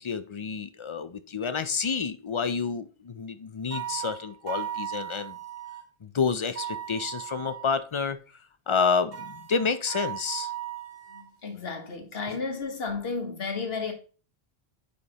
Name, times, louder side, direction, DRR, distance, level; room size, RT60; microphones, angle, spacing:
voice 1, 0.0-5.4 6.0-8.2 8.7-10.5, left 5 dB, 40° left, 0.4 m, -29 dB
sound 1, 3.7-5.8 6.5-7.8 9.1-11.3, right 11 dB, 65° right, 1.1 m, -37 dB
voice 2, 11.1-13.9, left 4 dB, 70° left, 1.5 m, -33 dB
9.4 x 5.0 x 2.8 m
omnidirectional pair, 1.1 m